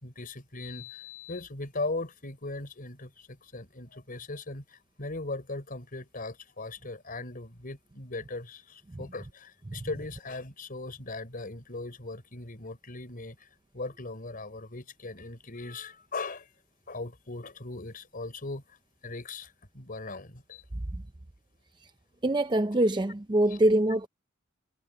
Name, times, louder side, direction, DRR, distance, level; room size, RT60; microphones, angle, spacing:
voice 1, 0.0-13.5 13.7-16.5 16.9-18.8 19.0-20.6, left 2 dB, 40° left, 4.2 m, -39 dB
voice 2, 22.2-24.1, right 1 dB, 20° right, 0.6 m, -24 dB
head